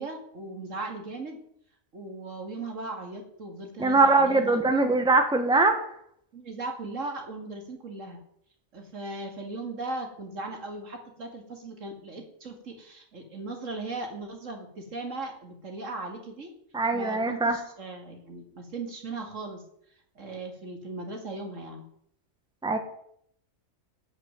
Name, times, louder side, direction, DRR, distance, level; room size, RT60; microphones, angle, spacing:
voice 1, 0.0-1.4 1.9-5.0 6.3-8.2 8.7-16.5 16.9-19.6 20.2-21.8, right 2 dB, 70° right, 3 dB, 2.6 m, -38 dB
voice 2, 3.8-5.8 16.7-17.6 22.6-22.8, right 3 dB, 5° right, 5 dB, 1.4 m, -22 dB
13.5 x 6.1 x 9.0 m, 0.69 s
omnidirectional pair, 1.4 m